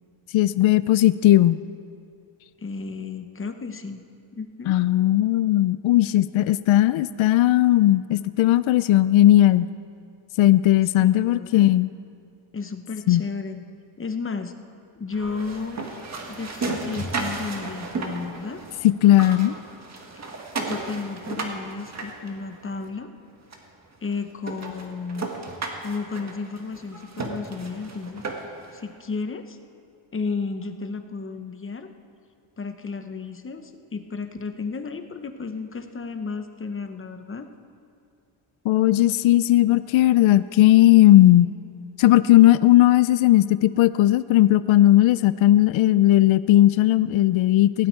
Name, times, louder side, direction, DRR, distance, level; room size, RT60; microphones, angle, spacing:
voice 1, 0.3-1.6 4.7-9.7 10.4-11.9 13.1-13.2 18.8-19.6 38.7-41.5 42.0-47.9, left 14 dB, 70° left, 15 dB, 0.5 m, -17 dB
voice 2, 2.6-4.0 4.3-4.8 11.0-11.7 12.5-13.6 14.0-14.5 14.9-15.8 16.3-18.6 20.1-23.1 24.0-25.3 25.8-28.2 28.7-29.6 30.1-31.9 32.6-37.5, left 4 dB, 25° left, 7 dB, 0.9 m, -33 dB
sound 1, 15.1-18.8 19.1-22.8 23.5-23.6 24.0-24.1 24.4-28.7, right 3 dB, 35° right, 1.8 m, -34 dB
18.0 x 17.5 x 4.5 m, 2.4 s
cardioid pair, 140°, 49 cm